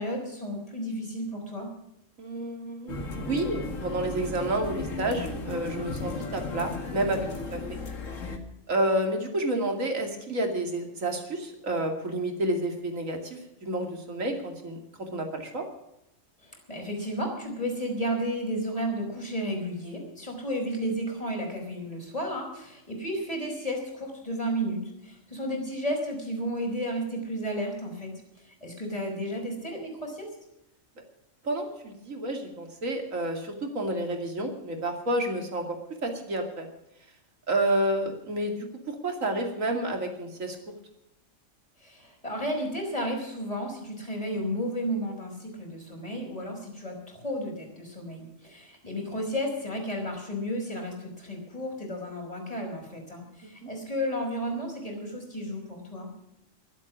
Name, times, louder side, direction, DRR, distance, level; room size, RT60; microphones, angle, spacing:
voice 1, 0.0-1.7 16.4-28.1 28.4-30.3 41.8-56.1, equal, 25° left, 1 dB, 5.3 m, -33 dB
voice 2, 2.2-7.8 8.7-14.8 15.1-15.6 31.4-36.7 37.5-38.5 38.9-40.6 53.4-53.7, right 1 dB, 80° right, 3 dB, 2.9 m, -30 dB
sound 1, 2.9-8.4, left 3 dB, 75° left, 2.3 m, -35 dB
23.0 x 8.4 x 6.2 m, 0.84 s
omnidirectional pair, 1.4 m